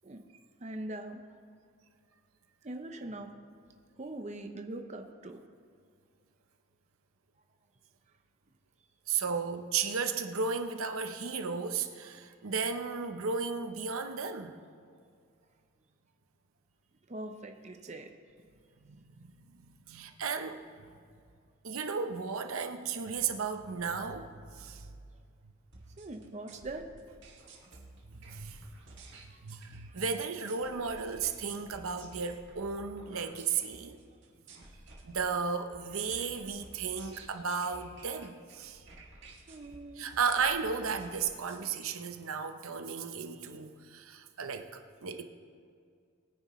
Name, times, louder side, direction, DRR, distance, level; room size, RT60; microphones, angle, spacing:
voice 1, 0.6-1.2 2.6-3.3 4.0-5.4 17.1-18.1 20.1-20.2 26.0-26.9 29.3-29.4 29.9-30.0 36.1-36.3 39.5-40.1, right 2 dB, 30° right, 5 dB, 0.7 m, -42 dB
voice 2, 9.1-14.6 18.8-20.7 21.6-24.9 28.1-28.7 29.4-34.0 35.0-38.8 40.0-45.2, right 5 dB, 75° right, 7 dB, 0.8 m, -34 dB
sound 1, 25.7-41.7, right 3 dB, 55° right, 1.9 m, -53 dB
21.0 x 9.6 x 3.1 m, 2.2 s
head